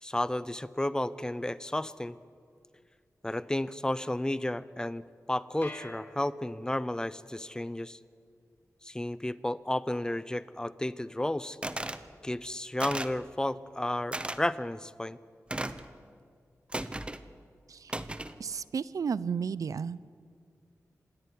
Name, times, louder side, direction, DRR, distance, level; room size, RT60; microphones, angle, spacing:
voice 1, 0.0-2.2 3.2-8.0 8.8-11.6 12.2-15.2, left 1 dB, 10° left, 16 dB, 0.7 m, -32 dB
sound 1, 5.6-7.0, left 1 dB, 35° left, 2.7 m, -47 dB
sound 2, 11.6-12.0 12.8-13.2 14.1-14.4 15.5-15.9 16.7-17.2 17.9-18.4, right 1 dB, 20° right, 1.0 m, -35 dB
voice 2, 18.4-20.0, right 6 dB, 75° right, 18 dB, 0.6 m, -33 dB
26.5 x 10.5 x 9.9 m, 2.2 s
cardioid pair, 60°, 6 cm